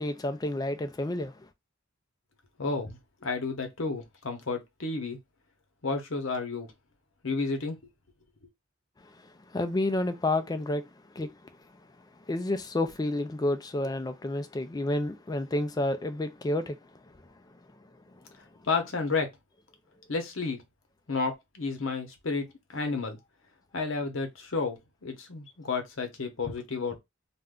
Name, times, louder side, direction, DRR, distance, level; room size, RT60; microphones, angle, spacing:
voice 1, 0.0-1.3 9.5-10.9 11.2-11.3 12.3-16.8, left 1 dB, 20° left, 0.4 m, -29 dB
voice 2, 2.6-5.2 5.8-6.7 7.2-7.8 18.6-19.3 20.1-20.6 21.1-23.2 23.7-27.0, left 4 dB, 70° left, 0.8 m, -31 dB
2.5 x 2.2 x 3.5 m
head